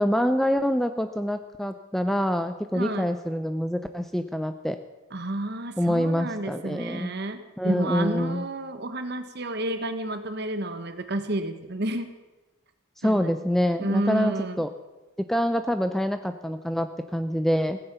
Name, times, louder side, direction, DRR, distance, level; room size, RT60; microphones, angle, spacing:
voice 1, 0.0-4.8 5.8-7.1 7.6-8.4 13.0-14.7 15.2-17.8, equal, ahead, 9 dB, 0.4 m, -26 dB
voice 2, 2.7-3.1 5.1-12.1 13.0-13.4 13.8-14.6, right 1 dB, 50° right, 9 dB, 1.2 m, -30 dB
16.0 x 9.8 x 6.8 m, 1.1 s
head